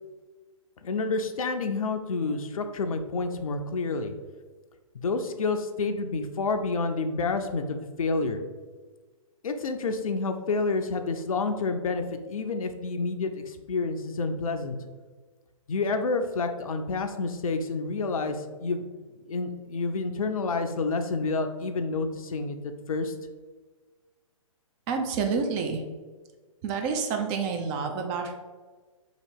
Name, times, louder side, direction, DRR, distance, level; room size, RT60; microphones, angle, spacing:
voice 1, 0.8-4.1 4.9-8.4 9.4-14.8 15.7-18.8 19.3-23.1, left 3 dB, 75° left, 6 dB, 0.5 m, -29 dB
voice 2, 24.9-25.8 26.6-28.3, right 5 dB, 25° right, 4 dB, 0.4 m, -28 dB
2.9 x 2.8 x 4.3 m, 1.4 s
figure-of-eight pair, 125°, 18 cm